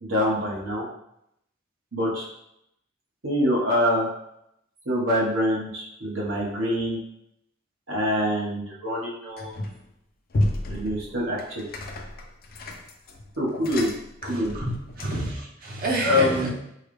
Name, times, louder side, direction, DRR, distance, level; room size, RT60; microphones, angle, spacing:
voice 1, 0.0-0.9 1.9-2.3 3.2-4.1 4.8-7.0 7.9-9.5 10.7-11.6 13.4-13.9 14.3-14.5 16.0-16.5, left 1 dB, 70° right, -5 dB, 1.3 m, -25 dB
sound 1, 9.4-9.9 10.3-15.4, left 1 dB, 50° left, 0.5 m, -32 dB
voice 2, 14.2-16.5, right 1 dB, 50° right, -2 dB, 0.8 m, -29 dB
4.5 x 2.2 x 3.2 m, 0.79 s
head